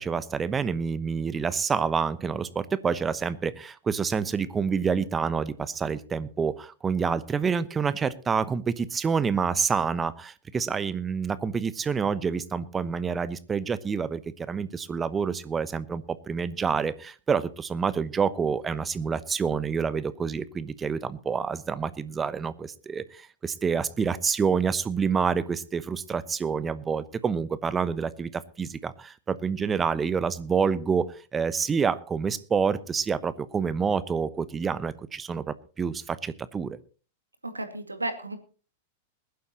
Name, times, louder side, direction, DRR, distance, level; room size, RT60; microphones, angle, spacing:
voice 1, 0.0-36.8, right 6 dB, 20° right, 15 dB, 1.0 m, -28 dB
voice 2, 37.4-38.4, right 2 dB, 85° right, 7 dB, 2.2 m, -33 dB
21.0 x 11.5 x 3.0 m, 0.37 s
figure-of-eight pair, 95°, 0 cm